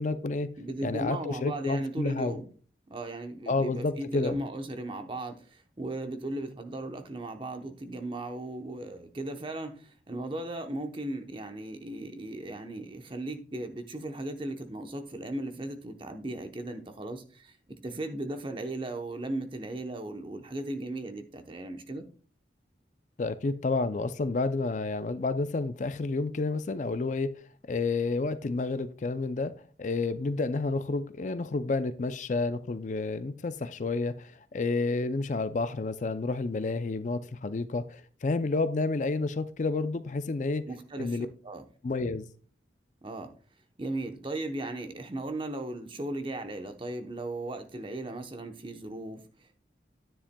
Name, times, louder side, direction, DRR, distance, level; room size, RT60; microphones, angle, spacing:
voice 1, 0.0-0.5 0.8-2.4 3.5-4.4 23.2-27.3 27.7-29.5 29.8-40.7 41.0-41.3 41.8-42.3, left 3 dB, 45° left, 0.4 m, -30 dB
voice 2, 0.6-2.5 2.9-22.0 40.6-41.7 43.0-43.3 43.8-49.5, right 2 dB, 30° right, 0.9 m, -37 dB
10.0 x 9.9 x 2.2 m
head